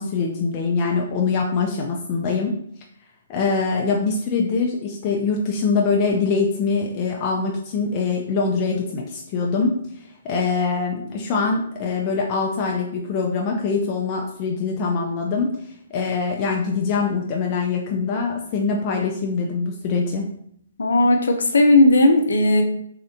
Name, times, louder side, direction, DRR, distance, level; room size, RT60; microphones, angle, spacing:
voice 1, 0.0-2.5 3.3-9.7 10.2-20.3, left 4 dB, 30° left, -1 dB, 0.4 m, -23 dB
voice 2, 20.8-22.6, left 2 dB, 85° left, 4 dB, 0.5 m, -16 dB
3.2 x 2.5 x 2.8 m, 0.68 s
hypercardioid pair, 155°, 0 cm